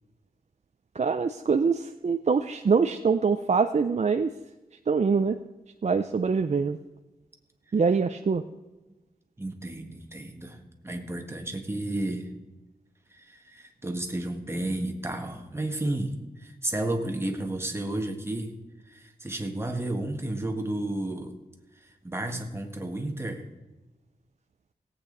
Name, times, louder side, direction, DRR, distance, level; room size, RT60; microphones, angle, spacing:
voice 1, 1.0-4.3 4.9-5.4 5.8-6.8 7.7-8.4, right 5 dB, 50° right, 7 dB, 0.5 m, -24 dB
voice 2, 9.4-12.3 13.1-18.5 18.9-21.3 22.0-23.4, right 1 dB, 15° right, 3 dB, 1.6 m, -32 dB
18.0 x 8.6 x 4.0 m, 1.1 s
wide cardioid pair, 105°, 15 cm